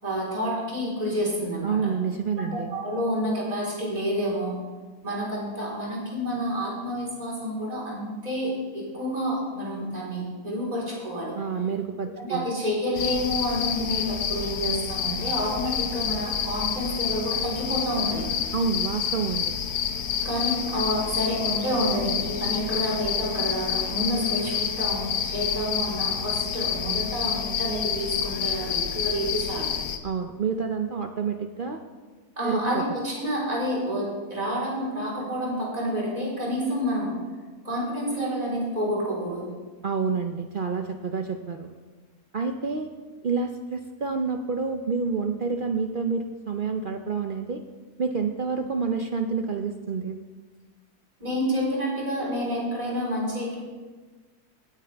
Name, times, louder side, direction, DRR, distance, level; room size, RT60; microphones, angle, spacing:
voice 1, 0.0-1.8 2.4-4.6 5.0-11.3 12.2-18.2 20.2-29.7 32.4-37.1 37.6-39.4 51.2-53.6, equal, 25° right, -5 dB, 4.1 m, -29 dB
voice 2, 1.6-2.8 11.3-12.5 18.5-19.5 30.0-31.8 32.4-32.8 39.8-41.7 42.3-42.9 43.2-47.6 48.0-50.2, right 5 dB, 60° right, 6 dB, 0.5 m, -28 dB
sound 1, 13.0-30.0, left 8 dB, 85° left, 1.4 m, -29 dB
19.0 x 9.3 x 3.4 m, 1.3 s
omnidirectional pair, 1.7 m